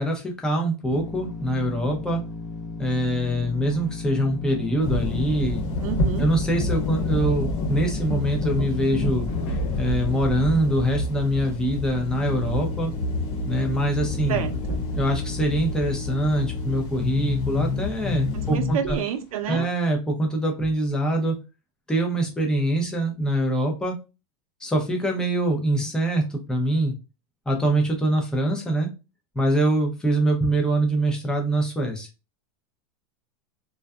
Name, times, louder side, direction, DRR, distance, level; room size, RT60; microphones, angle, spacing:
voice 1, 0.0-2.2 2.8-5.7 6.2-9.3 9.8-12.9 13.5-14.4 15.0-19.0 19.5-21.4 21.9-24.0 24.6-27.0 27.5-28.9 29.3-32.1, right 1 dB, 5° left, 0.4 m, -24 dB
sound 1, 0.9-9.9 10.5-10.6 11.0-11.1 12.2-19.0 19.5-19.7, left 4 dB, 40° left, 0.7 m, -33 dB
sound 2, 4.8-18.6, left 1 dB, 65° left, 1.0 m, -29 dB
voice 2, 5.8-6.3 14.3-14.8 18.3-19.7, right 9 dB, 75° right, 0.6 m, -29 dB
2.5 x 2.2 x 2.2 m
supercardioid pair, 155°, 18 cm